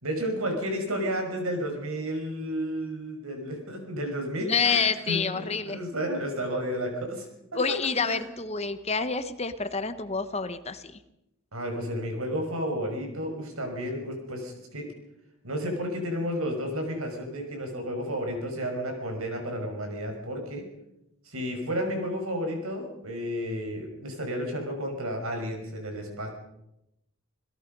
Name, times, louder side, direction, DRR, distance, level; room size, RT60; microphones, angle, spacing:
voice 1, 0.0-7.3 7.5-7.6 8.0-8.2 11.5-14.9 15.4-20.6 21.3-26.3, equal, 85° right, 3 dB, 5.9 m, -32 dB
voice 2, 4.5-5.8 7.5-11.0, left 5 dB, 30° left, 11 dB, 1.1 m, -28 dB
27.5 x 17.5 x 5.4 m, 0.86 s
head